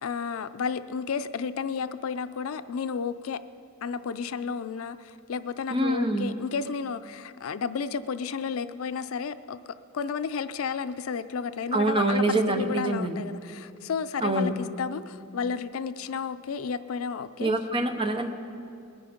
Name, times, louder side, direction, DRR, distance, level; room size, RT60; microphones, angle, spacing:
voice 1, 0.0-3.4 3.8-17.5, left 6 dB, 80° left, 13 dB, 0.4 m, -32 dB
voice 2, 5.7-6.3 11.7-13.2 14.2-14.5 17.4-18.3, right 2 dB, 25° right, 5 dB, 0.9 m, -25 dB
21.0 x 9.6 x 5.1 m, 2.5 s
head